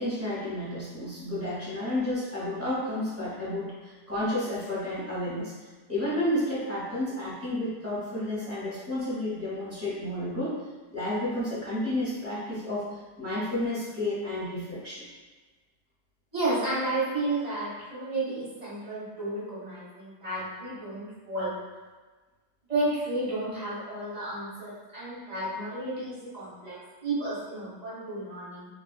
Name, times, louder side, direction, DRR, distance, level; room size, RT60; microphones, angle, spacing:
voice 1, 0.0-5.5 5.9-10.6 10.9-12.8 13.2-15.0, left 1 dB, 10° right, -10 dB, 0.8 m, -31 dB
voice 2, 16.3-21.5 22.7-28.7, right 2 dB, 25° right, -10 dB, 1.2 m, -32 dB
3.4 x 2.3 x 2.3 m, 1.3 s
omnidirectional pair, 1.6 m